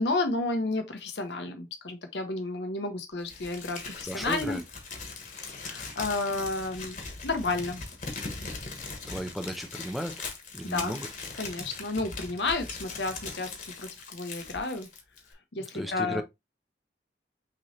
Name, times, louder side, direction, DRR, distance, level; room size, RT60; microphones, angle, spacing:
voice 1, 0.0-4.6 5.2-7.8 10.6-11.0 11.4-13.5 13.8-14.9 15.5-16.2, left 3 dB, 75° left, 0.9 m, -31 dB
Crumpling crinkling, 3.2-15.3, left 4 dB, 45° left, 1.2 m, -40 dB
voice 2, 4.1-4.6 9.1-10.2 10.5-11.1 15.6-16.2, equal, ahead, 0.5 m, -35 dB
6.1 x 3.0 x 2.8 m
head